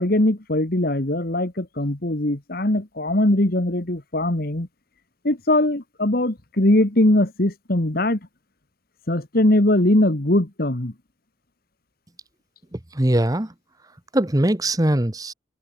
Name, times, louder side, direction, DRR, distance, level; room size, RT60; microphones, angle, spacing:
voice 1, 0.0-4.7 5.2-8.2 9.1-10.9, left 1 dB, 50° left, 1.8 m, -21 dB
voice 2, 12.7-13.5 14.1-15.3, right 1 dB, 20° right, 1.1 m, -21 dB
head